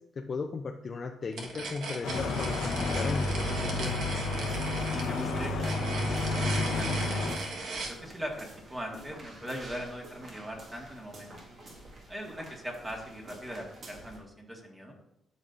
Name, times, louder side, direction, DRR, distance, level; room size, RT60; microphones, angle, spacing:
voice 1, 0.0-4.1, left 4 dB, 40° left, 4 dB, 0.5 m, -36 dB
sound 1, 1.3-8.0, right 3 dB, 75° right, 1.4 m, -37 dB
sound 2, 2.0-7.4, left 2 dB, 85° left, 0.9 m, -31 dB
sound 3, 3.5-14.2, right 1 dB, 45° right, 1.9 m, -50 dB
voice 2, 4.9-11.3 12.1-15.0, equal, 15° right, 0 dB, 1.7 m, -41 dB
12.0 x 5.3 x 2.6 m, 0.81 s
cardioid pair, 90°, 0 cm